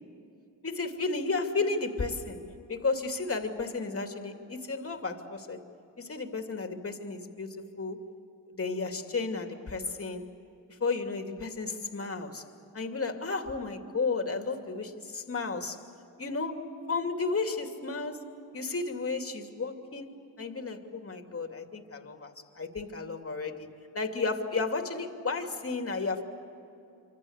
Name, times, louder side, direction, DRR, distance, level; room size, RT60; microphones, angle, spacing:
voice 1, 0.6-2.4 2.7-5.6 6.0-8.1 8.5-10.3 10.7-12.4 12.7-15.8 16.2-18.3 18.5-26.2, left 4 dB, 35° left, 5 dB, 2.7 m, -33 dB
27.5 x 25.5 x 8.1 m, 2.8 s
cardioid pair, 75°, 41 cm